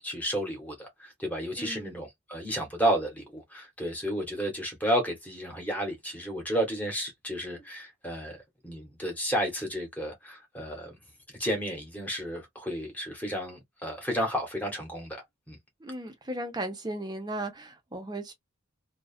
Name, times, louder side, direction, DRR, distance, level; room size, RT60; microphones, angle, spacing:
voice 1, 0.0-8.4 8.6-11.0 11.4-15.6, equal, 10° left, 1.0 m, -32 dB
voice 2, 1.6-2.0 15.8-18.3, right 1 dB, 20° right, 0.6 m, -36 dB
2.3 x 2.3 x 2.4 m
head